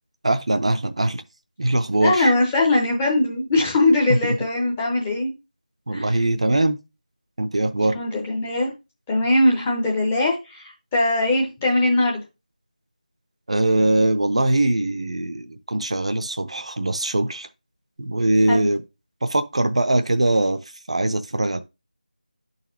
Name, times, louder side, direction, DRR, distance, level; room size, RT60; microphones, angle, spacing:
voice 1, 0.2-1.2 1.6-2.3 4.2-4.4 5.9-6.8 7.4-7.9 13.5-17.5 18.0-18.8 19.2-20.6 20.9-21.6, right 2 dB, 45° right, 0.5 m, -21 dB
voice 2, 2.0-5.3 5.9-6.1 7.9-8.7 9.1-12.2 18.5-18.7, left 2 dB, 10° left, 0.6 m, -21 dB
11.0 x 4.0 x 2.7 m
figure-of-eight pair, 170°, 5 cm